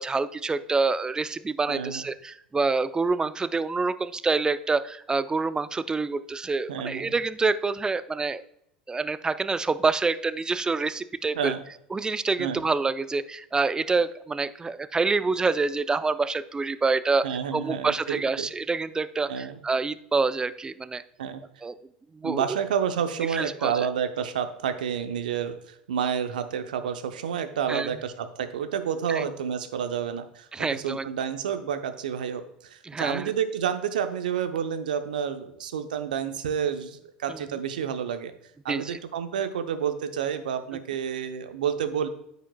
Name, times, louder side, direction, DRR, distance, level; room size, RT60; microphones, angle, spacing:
voice 1, 0.0-8.4 8.9-11.5 11.9-17.2 17.5-21.0 21.6-21.7 22.1-22.6 23.3-23.9 27.7-27.9 29.1-29.2 30.5-31.1 32.8-33.3 37.3-37.4 38.7-39.0, right 4 dB, 15° right, 13 dB, 0.5 m, -27 dB
voice 2, 1.7-2.1 6.7-7.1 11.3-11.6 12.4-12.6 17.2-18.5 19.3-19.6 21.2-21.4 22.2-38.3 38.6-42.1, right 8 dB, 75° right, 9 dB, 0.7 m, -29 dB
13.5 x 5.1 x 2.2 m, 0.77 s
hypercardioid pair, 75°, 5 cm